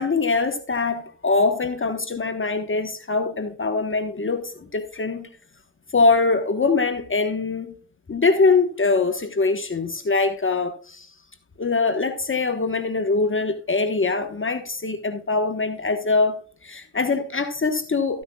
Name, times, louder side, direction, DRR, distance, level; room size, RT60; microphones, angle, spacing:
voice 1, 0.0-5.3 5.9-7.7 8.1-11.1 11.6-18.2, left 3 dB, 35° left, 1.3 m, -23 dB
14.0 x 9.9 x 2.4 m
cardioid pair, 60°, 33 cm